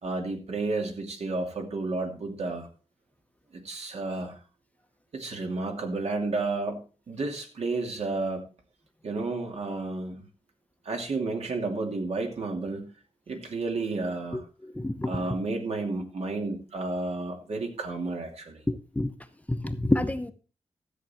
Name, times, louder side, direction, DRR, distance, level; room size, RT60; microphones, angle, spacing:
voice 1, 0.0-2.7 3.5-4.4 5.1-8.4 9.0-10.2 10.8-12.9 13.3-14.4 15.0-18.6, right 3 dB, 70° right, 3 dB, 2.6 m, -31 dB
voice 2, 14.3-15.2 18.7-19.1 19.5-20.3, left 1 dB, 15° left, 10 dB, 0.8 m, -28 dB
13.5 x 8.1 x 4.3 m, 0.36 s
wide cardioid pair, 105°, 11 cm